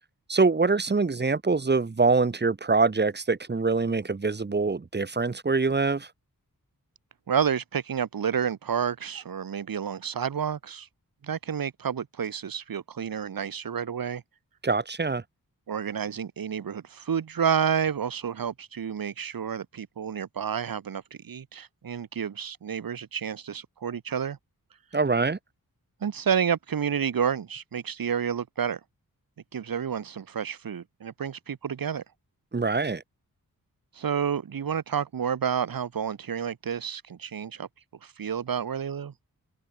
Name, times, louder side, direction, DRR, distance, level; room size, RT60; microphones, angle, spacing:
voice 1, 0.3-6.1 14.6-15.2 24.9-25.4 32.5-33.0, right 4 dB, 30° right, 1.3 m, -24 dB
voice 2, 7.3-10.9 11.2-14.2 15.7-24.4 26.0-28.8 29.5-32.0 33.9-37.7 38.0-39.1, right 7 dB, 80° right, 1.6 m, -30 dB
wide cardioid pair, 135°, 34 cm